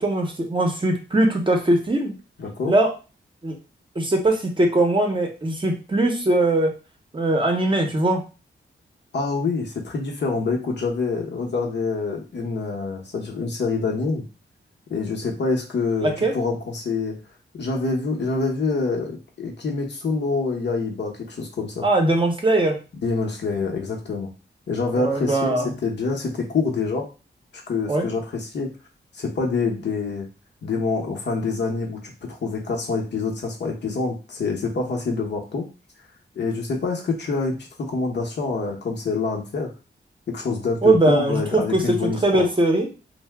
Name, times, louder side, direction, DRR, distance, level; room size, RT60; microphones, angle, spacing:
voice 1, 0.0-2.1 2.7-2.9 3.4-3.6 4.0-6.7 7.1-8.2 16.0-16.3 21.8-22.8 24.9-25.8 27.9-28.1 40.8-42.9, right 2 dB, 25° right, 2 dB, 0.6 m, -20 dB
voice 2, 2.4-2.7 9.1-14.2 14.9-17.2 17.5-21.8 23.0-24.3 24.7-25.6 25.8-27.1 27.7-28.7 29.1-30.3 30.6-35.7 36.4-39.7 40.3-42.5, left 4 dB, 65° left, 0 dB, 0.8 m, -26 dB
2.7 x 2.0 x 3.3 m, 0.33 s
wide cardioid pair, 115°, 19 cm